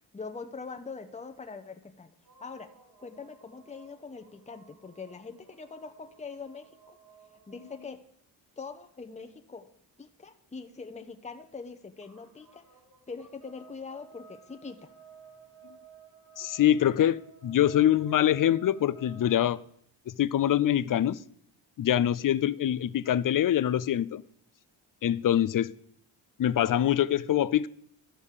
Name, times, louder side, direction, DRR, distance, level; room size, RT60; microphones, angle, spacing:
voice 1, 0.1-2.1 2.4-2.7 3.0-7.0 7.5-8.0 8.6-9.7 10.0-12.6 13.1-14.9, left 4 dB, 15° left, 0.9 m, -43 dB
sound 1, 2.2-7.9 11.6-11.7 12.0-19.7, right 6 dB, 60° right, 4.1 m, -55 dB
voice 2, 16.4-19.6 20.1-21.2 21.8-24.2 25.0-25.7 26.4-27.7, left 11 dB, 45° left, 0.5 m, -24 dB
12.5 x 5.4 x 6.6 m
cardioid pair, 80°, 44 cm